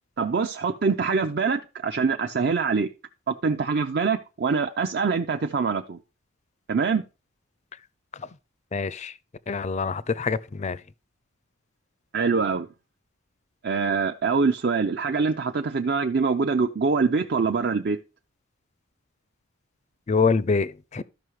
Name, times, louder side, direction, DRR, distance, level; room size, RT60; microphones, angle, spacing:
voice 1, 0.2-2.9 3.3-6.0 6.7-7.0 12.1-12.7 13.6-18.0, right 4 dB, 50° right, 0.6 m, -24 dB
voice 2, 8.7-9.1 9.5-10.8 20.1-21.0, left 4 dB, 35° left, 0.5 m, -25 dB
12.5 x 5.7 x 4.8 m
head